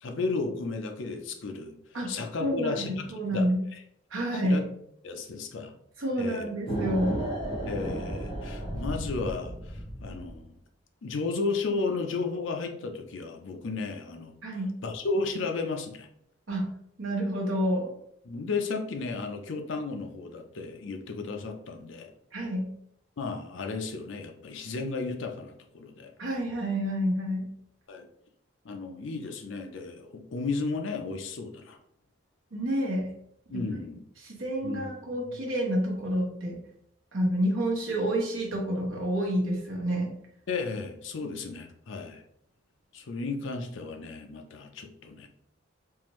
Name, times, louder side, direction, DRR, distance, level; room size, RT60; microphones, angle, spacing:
voice 1, 0.0-1.8 2.1-3.8 4.3-4.6 5.0-5.7 6.2-6.5 7.7-10.5 11.0-14.3 14.8-16.1 18.2-22.1 23.2-26.1 27.9-28.1 28.6-31.8 33.5-34.0 34.6-34.9 35.3-35.4 40.5-42.2 42.9-45.3, left 3 dB, 65° left, 4 dB, 0.5 m, -34 dB
voice 2, 2.4-3.6 4.1-4.6 6.0-7.2 14.4-14.7 16.5-16.7 17.0-17.9 22.3-22.7 26.2-27.5 32.5-33.1 33.5-33.6 34.2-36.6 37.1-40.1, equal, 75° right, -1 dB, 1.1 m, -29 dB
sound 1, 6.7-10.4, right 1 dB, 25° left, 1.1 m, -33 dB
3.7 x 2.5 x 3.0 m, 0.71 s
head